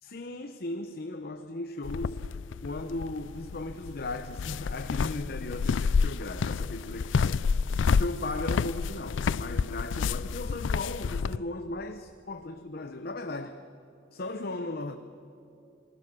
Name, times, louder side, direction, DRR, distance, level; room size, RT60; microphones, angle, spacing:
voice 1, 0.0-2.3 2.6-13.7 14.1-15.0, left 2 dB, 50° left, 0.9 m, -37 dB
sound 1, 1.8-11.4, left 5 dB, 75° left, 0.4 m, -29 dB
28.0 x 20.0 x 6.1 m
head